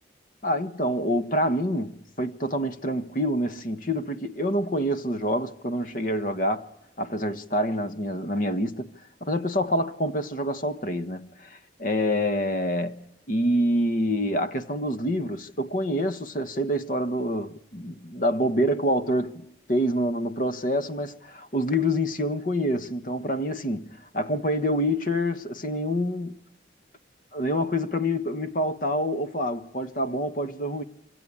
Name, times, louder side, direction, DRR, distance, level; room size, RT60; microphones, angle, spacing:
voice 1, 0.4-6.6 7.0-8.9 9.2-13.0 13.3-26.4 27.3-30.8, equal, 45° left, 1.2 m, -27 dB
27.0 x 24.5 x 8.6 m
head